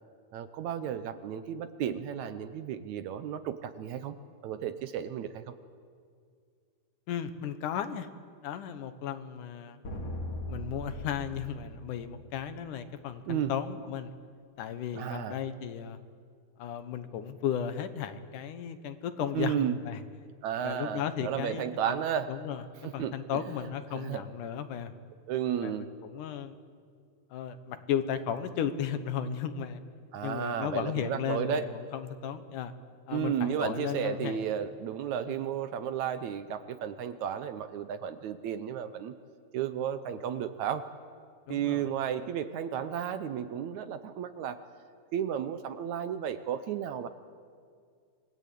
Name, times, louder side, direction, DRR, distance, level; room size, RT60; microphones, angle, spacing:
voice 1, 0.3-4.2 4.4-5.5 13.3-13.5 14.9-15.4 19.3-19.8 20.4-22.3 22.8-23.4 23.9-24.2 25.3-25.9 30.1-31.7 33.1-39.1 39.5-40.9 41.5-44.6 45.1-47.1, right 9 dB, 70° right, 11 dB, 2.0 m, -33 dB
voice 2, 7.1-8.1 8.4-9.8 10.5-14.1 14.6-16.0 16.6-20.0 20.6-22.0 22.3-22.6 22.9-24.9 25.6-26.6 27.3-29.8 30.2-32.7 33.1-34.4 35.3-35.4 41.5-41.9, left 8 dB, 75° left, 10 dB, 2.6 m, -35 dB
sound 1, 9.8-12.5, equal, 50° left, 3.3 m, -39 dB
27.0 x 20.5 x 8.5 m, 2.2 s
omnidirectional pair, 3.8 m